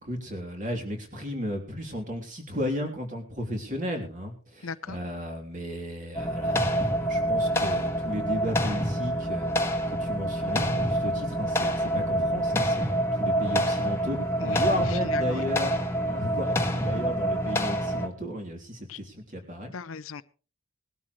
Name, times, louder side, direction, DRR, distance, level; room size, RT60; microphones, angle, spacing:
voice 1, 0.0-19.7, equal, 40° right, 3 dB, 3.3 m, -34 dB
voice 2, 4.6-5.0 14.4-15.4 18.9-19.0 19.7-20.2, left 5 dB, 75° left, 15 dB, 0.6 m, -38 dB
sound 1, 6.1-18.1, equal, 10° left, 1.3 m, -26 dB
19.5 x 12.5 x 3.2 m, 0.37 s
head